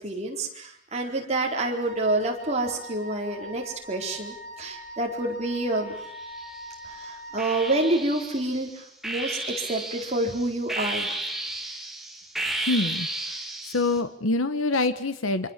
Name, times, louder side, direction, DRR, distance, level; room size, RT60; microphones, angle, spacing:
voice 1, 0.0-5.9 6.8-11.2, right 2 dB, 30° right, 1 dB, 4.3 m, -28 dB
Wind instrument woodwind instrument, 1.8-7.9, equal, 50° left, 6.5 m, -42 dB
sound 1, 6.0-6.7 7.4-14.0, right 2 dB, ahead, 2.8 m, -33 dB
voice 2, 12.7-13.3 13.6-15.5, left 2 dB, 85° left, 11 dB, 1.3 m, -26 dB
25.5 x 25.0 x 7.5 m, 0.73 s
head